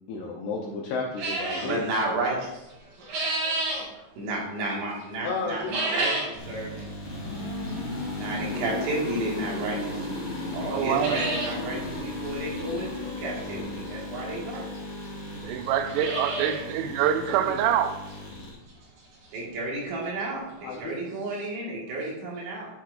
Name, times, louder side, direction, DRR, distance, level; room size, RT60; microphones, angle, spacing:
voice 1, 0.1-1.9 5.2-5.7 17.5-17.6 20.6-21.5 22.0-22.1, left 4 dB, 80° left, 2.3 m, -33 dB
sound 1, 1.2-1.7 2.7-3.8 5.6-6.4 6.8-6.9 7.7-7.8 9.5-9.6 10.0-10.1 10.4-10.5 10.8-11.6 11.9-12.0 12.2-12.3 13.9-14.0 14.7-14.8 15.0-15.1 15.6-16.7 17.0-17.1 17.6-17.7 18.1-18.2 19.9-20.0 20.2-20.3 20.7-20.8, right 2 dB, 55° right, 2.9 m, -30 dB
voice 2, 1.6-2.6 3.1-3.5 3.9-6.8 8.2-10.0 10.5-14.6 19.3-22.7, right 2 dB, 70° right, 4.0 m, -32 dB
sound 2, 6.3-18.5, left 2 dB, 25° left, 1.6 m, -35 dB
voice 3, 10.7-11.2 15.4-18.0, right 10 dB, 90° right, 3.2 m, -25 dB
12.5 x 5.9 x 2.5 m
omnidirectional pair, 5.5 m